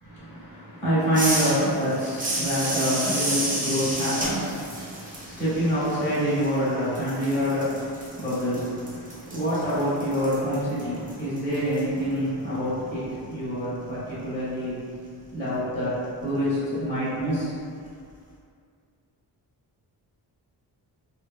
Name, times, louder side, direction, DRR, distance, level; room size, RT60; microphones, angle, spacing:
voice 1, 0.0-14.8 15.3-15.9 16.2-17.5, equal, 15° left, -13 dB, 1.0 m, -26 dB
sound 1, 1.1-6.7 7.0-11.8, right 1 dB, 20° right, 0.3 m, -31 dB
2.9 x 2.2 x 2.3 m, 2.3 s
wide cardioid pair, 160°, 41 cm